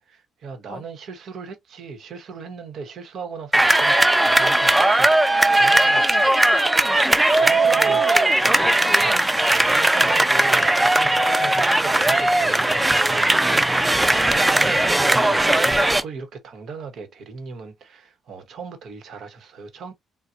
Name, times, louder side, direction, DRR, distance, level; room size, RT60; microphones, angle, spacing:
voice 1, 0.0-5.1 5.5-6.3 7.3-8.0 9.0-9.2 9.7-13.6 14.1-19.9, right 5 dB, 65° right, 1.0 m, -37 dB
sound 1, 3.5-16.0, right 1 dB, 15° right, 0.5 m, -18 dB
voice 2, 5.9-9.3, left 5 dB, 45° left, 0.6 m, -36 dB
4.0 x 2.1 x 2.5 m
cardioid pair, 90°, 0 cm